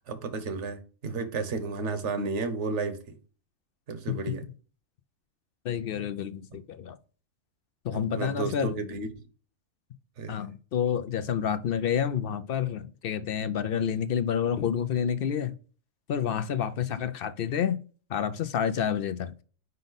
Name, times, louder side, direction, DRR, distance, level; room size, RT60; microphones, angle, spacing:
voice 1, 0.1-3.2 3.9-4.4 7.9-9.1 10.2-10.5, right 3 dB, 60° right, 1.2 m, -32 dB
voice 2, 5.6-7.0 7.8-8.8 10.3-15.5 16.1-17.8 18.1-19.3, left 8 dB, 65° left, 0.5 m, -29 dB
5.3 x 5.2 x 4.0 m
omnidirectional pair, 1.4 m